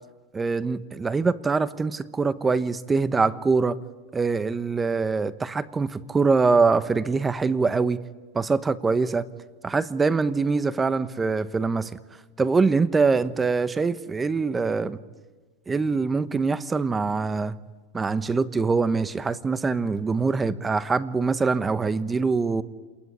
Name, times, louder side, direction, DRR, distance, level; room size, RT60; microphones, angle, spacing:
voice 1, 0.3-3.8 4.1-8.0 8.3-9.2 9.6-11.9 12.4-15.0 15.7-17.6 17.9-22.6, right 4 dB, 15° right, 15 dB, 1.1 m, -23 dB
27.5 x 21.0 x 9.8 m, 1.4 s
supercardioid pair, 125°, 0 cm